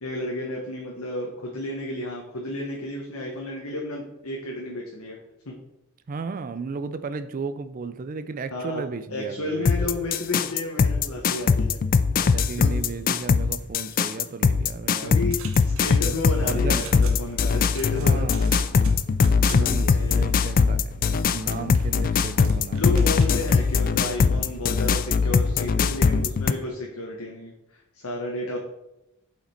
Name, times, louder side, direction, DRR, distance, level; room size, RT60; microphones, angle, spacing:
voice 1, 0.0-5.2 5.5-5.6 8.5-11.8 12.6-12.7 15.0-15.4 15.6-18.7 19.5-20.3 22.7-28.6, left 2 dB, 75° left, -1 dB, 1.2 m, -32 dB
voice 2, 6.1-9.7 12.1-15.2 15.9-16.9 18.0-18.6 19.5-23.2, right 4 dB, 40° right, 11 dB, 0.4 m, -34 dB
sound 1, 9.7-26.5, left 5 dB, 40° left, 0.3 m, -21 dB
sound 2, 15.0-23.5, right 7 dB, 65° right, 0.9 m, -45 dB
8.2 x 5.0 x 4.4 m, 0.90 s
head